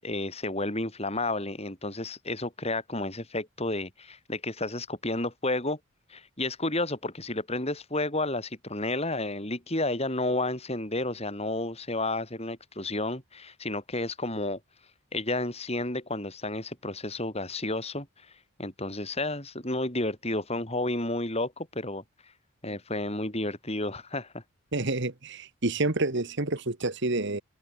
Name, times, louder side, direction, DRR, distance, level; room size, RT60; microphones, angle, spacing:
voice 1, 0.0-5.8 6.1-14.6 15.1-18.1 18.6-22.0 22.6-24.4, left 2 dB, 30° left, 7.3 m, -31 dB
voice 2, 24.7-27.4, right 2 dB, 55° right, 1.7 m, -28 dB
open air
head